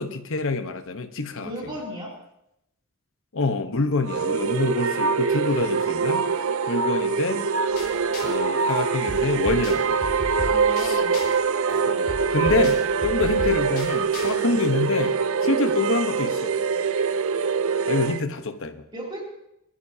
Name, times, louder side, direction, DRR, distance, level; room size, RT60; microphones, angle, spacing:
voice 1, 0.0-1.5 3.3-6.3 6.7-7.5 8.2-10.0 10.8-11.0 11.9-15.1 15.4-16.5 17.9-18.8, left 3 dB, 65° left, 8 dB, 1.1 m, -26 dB
voice 2, 1.4-2.1 10.5-11.2 18.9-19.2, equal, 20° right, -4 dB, 2.9 m, -35 dB
sound 1, 4.0-18.2, right 5 dB, 65° right, 0.5 m, -24 dB
sound 2, 7.8-8.4 8.7-11.4 11.7-14.3, left 1 dB, 45° left, 5.9 m, -35 dB
23.5 x 13.0 x 2.8 m, 0.82 s
head